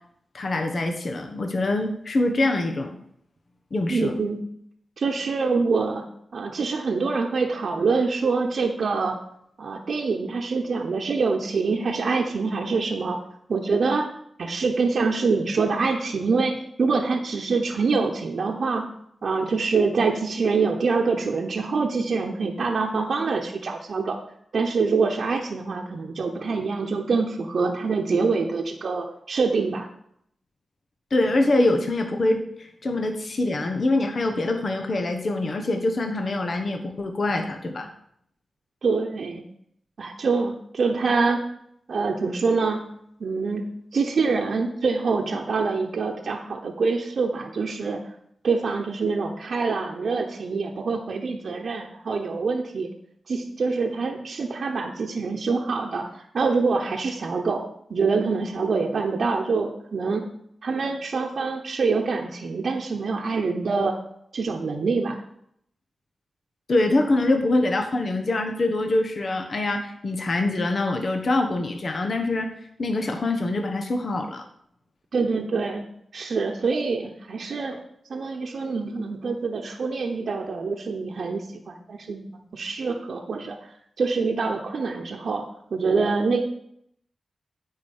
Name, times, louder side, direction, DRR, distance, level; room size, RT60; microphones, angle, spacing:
voice 1, 0.3-3.0 3.7-4.1 31.1-37.9 66.7-74.4, left 2 dB, 55° left, 4 dB, 1.2 m, -24 dB
voice 2, 3.9-4.4 5.0-6.0 6.3-9.2 9.6-13.2 13.5-14.1 14.4-18.9 19.2-24.2 24.5-29.9 38.8-39.4 40.0-41.4 41.9-42.8 43.2-43.7 43.9-48.0 48.4-52.9 53.3-57.6 57.9-60.3 60.6-64.0 64.3-65.2 75.1-75.8 76.1-77.8 78.1-83.6 84.0-86.4, right 4 dB, 70° right, 1 dB, 1.0 m, -25 dB
9.5 x 4.8 x 7.3 m, 0.70 s
wide cardioid pair, 80°, 0 cm